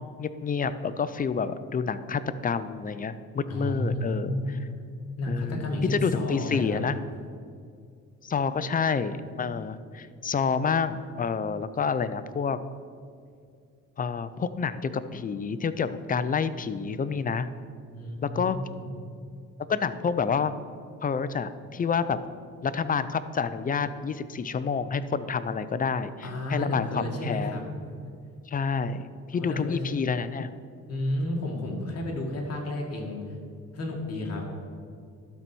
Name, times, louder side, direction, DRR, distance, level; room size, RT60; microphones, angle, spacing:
voice 1, 0.0-4.6 5.3-7.0 8.2-12.6 14.0-17.5 18.2-18.6 19.7-20.5 21.0-22.2 22.6-27.6 28.5-30.5, left 5 dB, 30° left, 13 dB, 0.4 m, -28 dB
voice 2, 3.5-4.6 5.2-6.8 17.9-18.9 26.2-27.6 29.3-29.8 30.9-33.2 33.7-34.5, left 1 dB, 55° left, 1 dB, 2.0 m, -31 dB
12.0 x 4.1 x 6.1 m, 2.3 s
cardioid pair, 90°, 30 cm